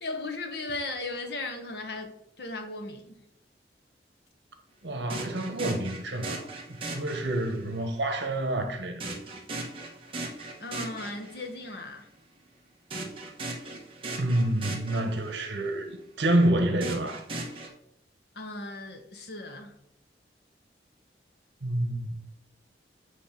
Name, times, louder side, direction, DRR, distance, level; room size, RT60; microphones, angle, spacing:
voice 1, 0.0-3.3 10.6-12.1 18.3-19.7, left 2 dB, 65° left, 1.2 m, -37 dB
voice 2, 4.8-9.1 14.2-17.2 21.6-22.1, right 1 dB, 85° right, 1.2 m, -28 dB
sound 1, 5.1-7.7 9.0-11.6 12.9-15.6 16.8-17.7, right 2 dB, 30° right, 1.4 m, -38 dB
8.4 x 3.3 x 5.9 m
head